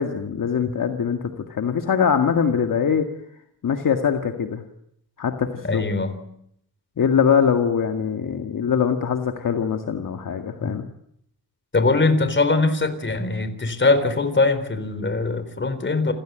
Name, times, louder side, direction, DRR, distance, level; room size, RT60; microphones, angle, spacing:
voice 1, 0.0-3.1 3.6-4.6 5.2-5.9 7.0-10.8, left 7 dB, 55° left, 5 dB, 1.9 m, -22 dB
voice 2, 5.6-6.2 10.6-10.7 11.7-16.1, left 3 dB, 30° left, 11 dB, 3.9 m, -21 dB
28.5 x 16.5 x 9.0 m, 0.74 s
cardioid pair, 115°, 38 cm